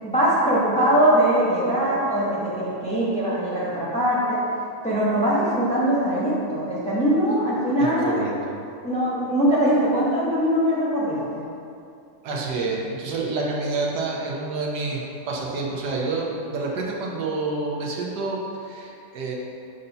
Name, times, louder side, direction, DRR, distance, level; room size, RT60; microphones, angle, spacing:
voice 1, 0.0-4.4 4.8-8.2 8.8-11.4, equal, 5° left, -7 dB, 0.9 m, -22 dB
voice 2, 7.8-8.3 12.2-19.3, right 3 dB, 85° right, -2 dB, 1.5 m, -28 dB
6.9 x 2.7 x 5.4 m, 2.6 s
omnidirectional pair, 1.8 m